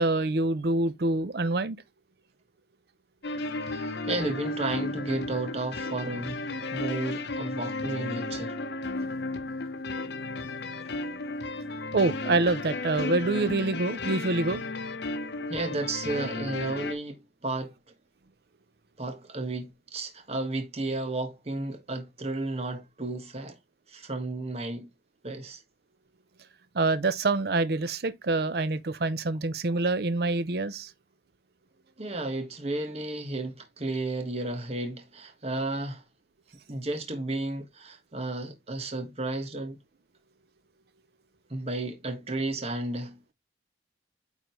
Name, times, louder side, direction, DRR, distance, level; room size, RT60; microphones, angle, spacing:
voice 1, 0.0-1.8 11.9-14.6 26.7-30.9, right 2 dB, 60° right, 0.6 m, -26 dB
sound 1, 3.2-16.9, left 2 dB, 70° left, 0.9 m, -34 dB
voice 2, 3.6-8.6 15.5-17.7 19.0-23.6 23.9-24.9 25.2-25.6 32.0-36.0 36.7-39.8 41.5-43.3, right 2 dB, 35° right, 1.4 m, -33 dB
9.1 x 3.8 x 3.1 m
head